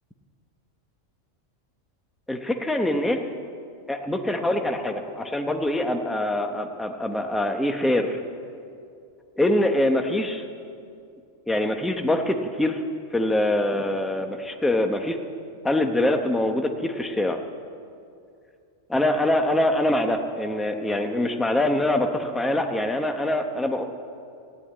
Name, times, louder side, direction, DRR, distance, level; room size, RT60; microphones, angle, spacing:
voice 1, 2.3-3.2 3.9-8.2 9.4-10.4 11.5-12.8 13.1-15.2 15.6-17.4 18.9-23.8, left 1 dB, ahead, 5 dB, 0.6 m, -24 dB
14.5 x 10.0 x 8.8 m, 2.5 s
omnidirectional pair, 1.3 m